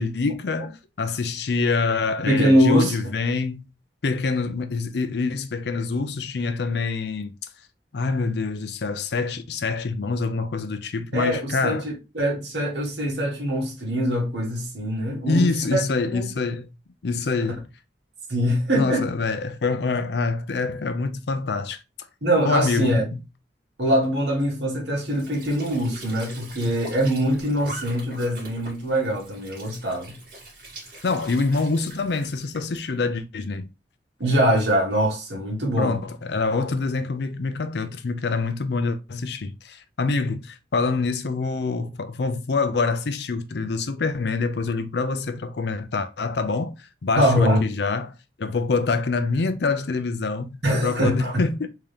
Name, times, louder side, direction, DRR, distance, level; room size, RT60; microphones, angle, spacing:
voice 1, 0.0-3.7 4.0-7.3 7.9-11.9 15.3-16.7 17.0-17.7 18.8-21.8 22.4-23.2 31.0-33.6 35.8-48.1 48.4-51.7, left 4 dB, 70° left, 0.5 m, -26 dB
voice 2, 2.3-2.9 11.1-15.8 16.1-16.3 18.3-19.1 22.2-23.0 23.8-30.2 34.2-36.0 47.2-47.6 50.6-51.4, equal, 75° right, 1.7 m, -23 dB
Squeak / Sink (filling or washing) / Trickle dribble, 25.0-32.9, right 1 dB, 50° right, 1.8 m, -42 dB
3.6 x 2.9 x 3.4 m
head